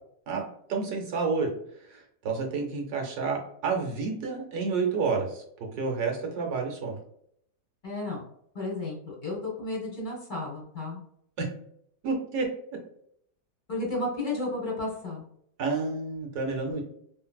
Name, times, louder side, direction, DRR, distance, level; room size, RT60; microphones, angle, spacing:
voice 1, 0.7-1.5 1.9-5.4 5.8-7.0 11.4-11.5 12.0-12.5 15.6-16.8, right 4 dB, 70° right, 1 dB, 1.2 m, -29 dB
voice 2, 7.8-8.2 8.5-11.0 13.7-15.2, left 2 dB, 35° left, -3 dB, 0.9 m, -33 dB
3.1 x 2.5 x 2.2 m, 0.69 s
omnidirectional pair, 1.8 m